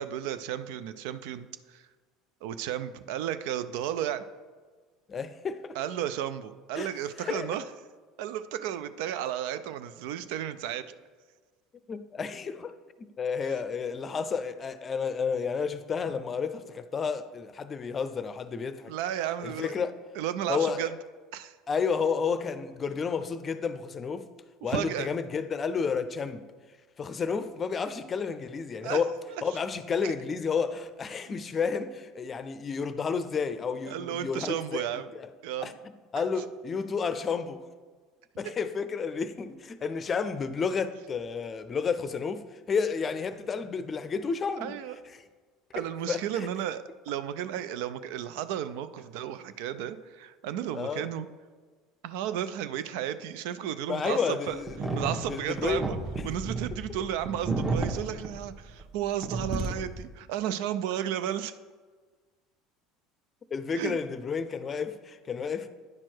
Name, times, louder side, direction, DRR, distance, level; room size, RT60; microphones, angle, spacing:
voice 1, 0.0-1.9 2.4-4.2 5.7-7.6 8.2-10.9 18.9-19.7 20.2-20.9 21.3-21.6 24.7-25.1 28.8-29.0 29.3-29.4 30.0-30.1 31.3-31.4 33.9-35.1 35.4-35.7 44.6-45.0 45.7-51.3 52.0-54.6 54.9-56.0 56.2-61.5 63.8-64.0, right 10 dB, 70° right, 0.4 m, -33 dB
voice 2, 5.1-5.8 6.7-6.9 7.2-7.7 11.9-18.9 19.4-19.9 20.5-20.9 21.7-24.3 24.6-26.4 27.0-34.9 35.6-35.7 36.1-37.7 38.4-44.7 46.1-46.5 50.7-51.1 53.8-55.0 55.3-55.9 63.5-65.7, left 5 dB, 35° left, 0.5 m, -31 dB
sound 1, 54.7-59.0 59.2-60.0, right 3 dB, 25° right, 1.2 m, -32 dB
9.7 x 4.5 x 4.5 m
hypercardioid pair, 80°, 0 cm